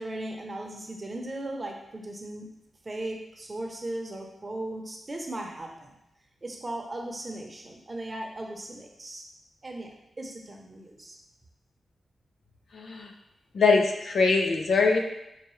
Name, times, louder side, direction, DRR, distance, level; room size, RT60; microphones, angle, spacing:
voice 1, 0.0-2.5 2.8-6.0 6.4-9.2 9.6-9.9 10.2-11.2, right 1 dB, 35° right, 1 dB, 0.8 m, -37 dB
voice 2, 12.7-13.1 13.5-15.0, left 4 dB, 70° left, 3 dB, 0.5 m, -22 dB
5.5 x 2.3 x 3.2 m, 0.87 s
cardioid pair, 60°, 0 cm